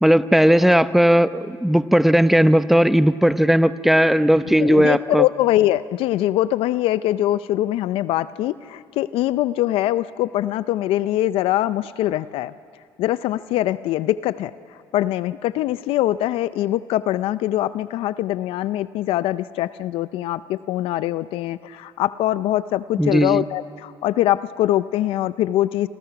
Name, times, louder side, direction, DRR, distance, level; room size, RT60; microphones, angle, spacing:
voice 1, 0.0-5.2 23.0-23.4, equal, ahead, 13 dB, 0.8 m, -16 dB
voice 2, 4.6-12.5 13.0-25.9, left 14 dB, 70° left, 15 dB, 0.5 m, -23 dB
28.0 x 25.0 x 5.9 m, 2.3 s
supercardioid pair, 90°, 10 cm